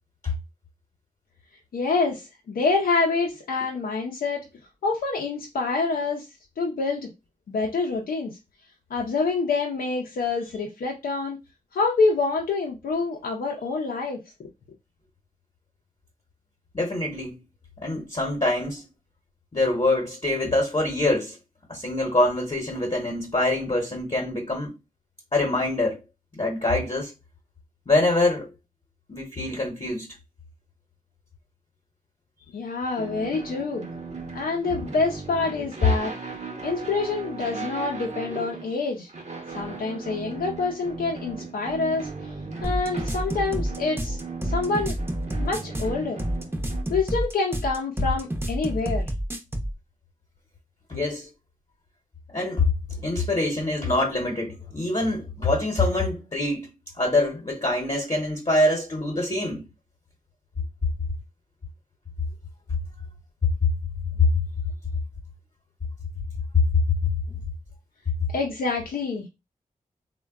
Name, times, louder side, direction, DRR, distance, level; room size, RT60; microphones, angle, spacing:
voice 1, 1.7-4.5 4.8-6.3 6.6-7.1 7.5-8.4 8.9-11.4 11.7-14.2 32.5-33.9 34.3-36.1 36.6-39.1 39.5-42.3 42.6-44.2 44.4-45.0 45.4-46.2 46.9-49.1 68.3-69.3, left 4 dB, 85° left, 0.5 m, -26 dB
voice 2, 16.7-17.3 17.8-18.8 19.5-21.4 21.7-24.7 25.3-26.0 26.3-27.1 27.9-28.5 29.1-30.1 50.9-51.3 52.3-52.7 53.0-56.7 57.0-59.6 64.2-64.3 66.5-66.6, left 2 dB, 40° left, 0.9 m, -24 dB
sound 1, 33.0-46.8, right 4 dB, 50° right, 0.8 m, -37 dB
sound 2, 42.6-49.7, equal, 15° right, 0.6 m, -28 dB
3.4 x 2.1 x 2.3 m
cardioid pair, 50°, 15 cm